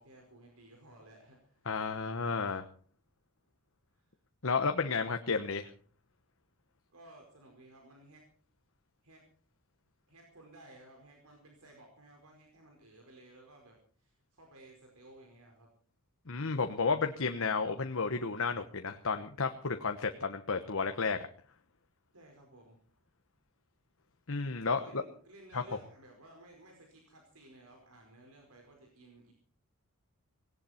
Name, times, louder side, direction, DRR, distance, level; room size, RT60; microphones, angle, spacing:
voice 1, 0.0-1.6 3.9-4.0 6.9-8.2 9.0-9.2 10.1-15.7 22.1-22.8 24.8-29.3, right 2 dB, 80° right, 2 dB, 5.0 m, -56 dB
voice 2, 1.7-2.6 4.4-5.7 16.3-21.3 24.3-25.0 25.5-25.6, left 4 dB, 65° left, 6 dB, 1.1 m, -32 dB
18.5 x 17.5 x 4.4 m, 0.44 s
head